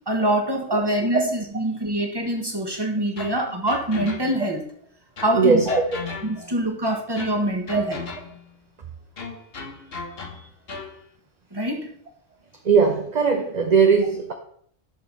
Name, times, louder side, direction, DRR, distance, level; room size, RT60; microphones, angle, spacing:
voice 1, 0.1-4.6 5.2-5.8 6.2-8.0 11.5-11.9, right 1 dB, 20° right, 2 dB, 1.6 m, -24 dB
sound 1, 3.2-4.6 5.2-6.6 7.2-8.5 9.2-11.0, left 4 dB, 50° left, 1.4 m, -37 dB
voice 2, 5.3-6.0 6.4-6.5 7.7-7.8 12.6-14.3, right 5 dB, 35° right, 3 dB, 0.9 m, -19 dB
11.0 x 6.7 x 4.1 m, 0.64 s
omnidirectional pair, 1.3 m